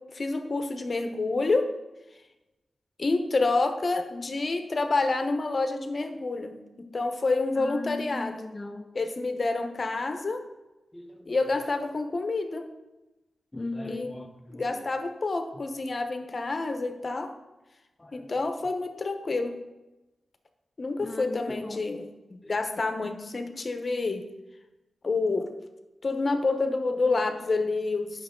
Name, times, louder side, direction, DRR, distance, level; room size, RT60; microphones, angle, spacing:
voice 1, 0.1-1.7 3.0-8.4 8.9-10.4 11.3-12.7 13.9-14.1 14.5-17.3 18.1-19.6 20.8-24.2 25.0-25.5 26.0-28.2, left 3 dB, 50° left, 6 dB, 0.9 m, -28 dB
voice 2, 7.6-8.9 10.9-11.7 13.5-14.9 18.0-18.3 21.0-21.8 22.4-22.5, left 2 dB, 20° left, 3 dB, 0.6 m, -38 dB
8.6 x 6.2 x 3.8 m, 1.0 s
cardioid pair, 50°, 0 cm